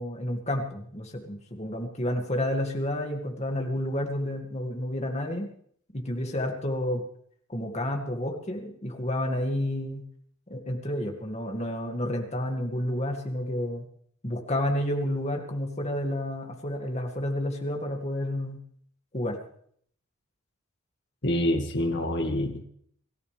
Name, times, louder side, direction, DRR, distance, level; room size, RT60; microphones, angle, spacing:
voice 1, 0.0-5.5 5.9-7.0 7.5-10.0 10.5-13.8 14.2-18.6 19.1-19.4, left 1 dB, 30° left, 3 dB, 2.3 m, -30 dB
voice 2, 21.2-22.6, left 1 dB, 55° left, 3 dB, 2.1 m, -26 dB
24.0 x 14.0 x 3.5 m, 0.64 s
head